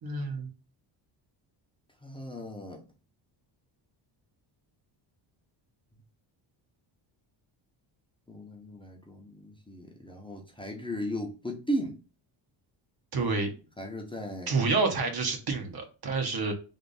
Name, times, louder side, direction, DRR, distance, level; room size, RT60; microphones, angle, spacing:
voice 1, 0.0-0.5 13.1-13.5 14.5-16.5, right 4 dB, 45° right, 4 dB, 1.2 m, -28 dB
voice 2, 2.0-2.8 8.3-12.0 13.2-13.3 13.8-14.5, equal, 10° left, 0 dB, 0.8 m, -36 dB
3.5 x 2.5 x 4.0 m, 0.33 s
cardioid pair, 115°, 49 cm